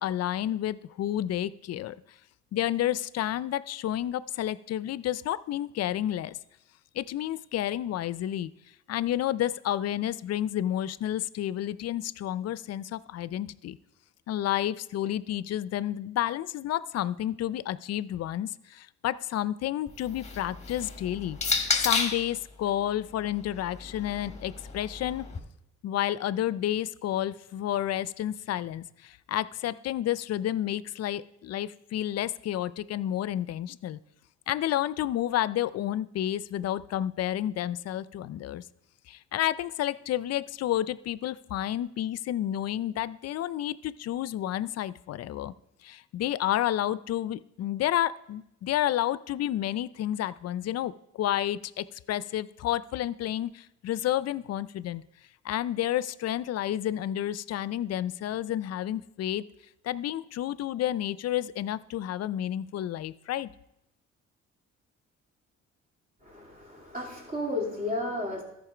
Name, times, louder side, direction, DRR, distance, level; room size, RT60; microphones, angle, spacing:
voice 1, 0.0-2.0 2.5-6.4 6.9-8.5 8.9-13.8 14.3-21.4 21.7-25.2 25.8-34.0 34.5-38.6 39.1-45.5 45.8-55.1 55.4-59.4 59.8-63.5, left 12 dB, 55° left, 17 dB, 0.4 m, -30 dB
sound 1, 19.9-22.3 23.3-25.4, left 4 dB, 20° left, 1.4 m, -32 dB
voice 2, 66.2-68.4, left 1 dB, 30° right, -2 dB, 3.0 m, -33 dB
13.0 x 5.1 x 4.9 m, 0.82 s
cardioid pair, 90°, 30 cm